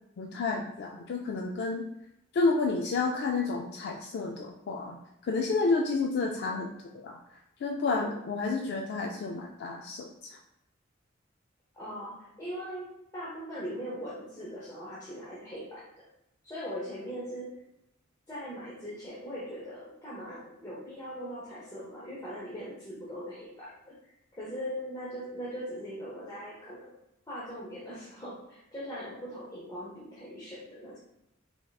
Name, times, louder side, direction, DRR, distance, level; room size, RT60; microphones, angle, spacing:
voice 1, 0.2-1.9 2.3-5.0 5.2-6.7 7.0-7.2 7.6-10.3, left 3 dB, 55° left, 2 dB, 0.3 m, -30 dB
voice 2, 7.9-8.3 11.7-16.0 16.4-17.6 18.3-26.9 27.3-31.0, equal, 20° left, -8 dB, 0.7 m, -40 dB
3.5 x 3.4 x 2.3 m, 0.82 s
head